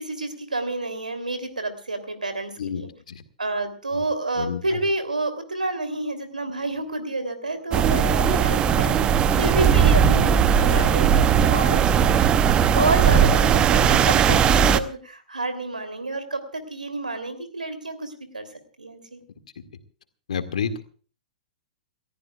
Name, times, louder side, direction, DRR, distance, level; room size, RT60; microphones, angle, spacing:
voice 1, 0.0-2.9 3.4-10.3 10.6-12.3 12.7-18.4 18.8-19.2, right 2 dB, 80° right, 8 dB, 3.0 m, -29 dB
voice 2, 2.6-3.2 4.4-4.6 8.7-9.0 20.3-20.8, left 6 dB, 60° left, 9 dB, 2.0 m, -30 dB
sound 1, 7.7-14.8, right 8 dB, 20° right, 0.8 m, -18 dB
29.0 x 14.5 x 2.4 m, 0.40 s
figure-of-eight pair, 110°, 4 cm